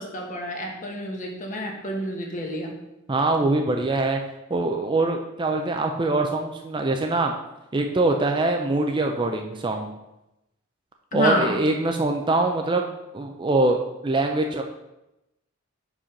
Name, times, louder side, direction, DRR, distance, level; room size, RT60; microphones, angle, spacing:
voice 1, 0.0-2.7 11.1-11.5, left 1 dB, 35° left, 1 dB, 1.2 m, -28 dB
voice 2, 3.1-4.2 4.5-7.3 7.7-9.9 11.1-12.9 13.1-14.6, right 2 dB, 20° right, 3 dB, 0.4 m, -23 dB
5.5 x 5.1 x 5.0 m, 0.93 s
head